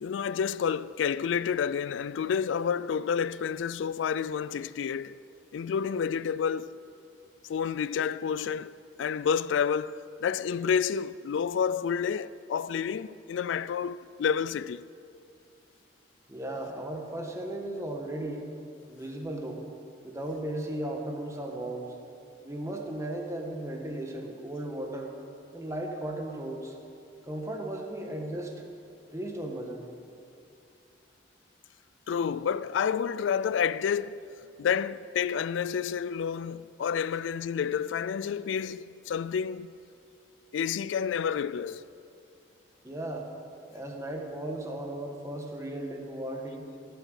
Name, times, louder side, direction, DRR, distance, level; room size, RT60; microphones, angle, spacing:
voice 1, 0.0-5.2 5.5-6.8 7.5-14.9 32.1-34.2 34.6-39.7 40.5-41.8, left 7 dB, 85° left, 0.3 m, -29 dB
voice 2, 16.3-18.5 18.9-19.6 20.0-22.0 22.4-25.1 25.5-26.8 27.3-28.5 29.1-29.8 42.8-43.3 43.7-46.7, right 1 dB, 15° right, 1.6 m, -36 dB
18.5 x 7.8 x 8.2 m
head